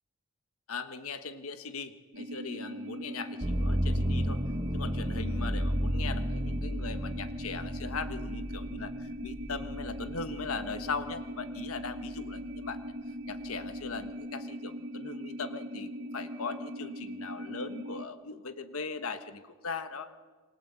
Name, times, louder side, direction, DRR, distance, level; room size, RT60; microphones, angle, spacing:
voice 1, 0.7-4.4 4.7-12.8 13.3-20.2, left 4 dB, 75° left, 9 dB, 1.3 m, -39 dB
sound 1, 2.1-18.1, equal, 55° right, 1.1 m, -40 dB
sound 2, 3.4-11.2 11.7-12.5, equal, 20° right, 1.3 m, -33 dB
28.0 x 24.0 x 8.2 m, 1.5 s
head